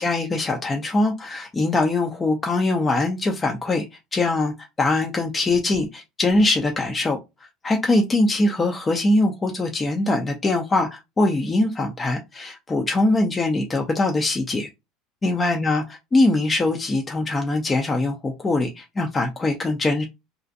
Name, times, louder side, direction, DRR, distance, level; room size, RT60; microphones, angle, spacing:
voice 1, 0.0-3.9 4.1-7.2 7.6-14.7 15.2-15.8 16.1-20.1, left 2 dB, 20° left, 0.4 m, -22 dB
2.4 x 2.1 x 2.5 m
supercardioid pair, 130°, 0 cm